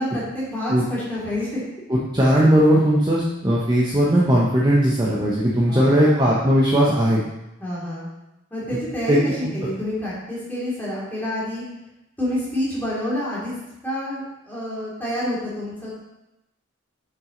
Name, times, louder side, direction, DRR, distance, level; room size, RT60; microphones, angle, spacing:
voice 1, 0.0-1.6 5.7-6.3 7.6-8.1 8.5-11.6 12.2-13.5 13.8-16.0, left 1 dB, 10° left, -8 dB, 2.5 m, -28 dB
voice 2, 1.9-7.2 9.1-9.2 9.4-9.5, equal, 20° right, -6 dB, 0.8 m, -18 dB
6.3 x 6.0 x 3.8 m, 0.92 s
head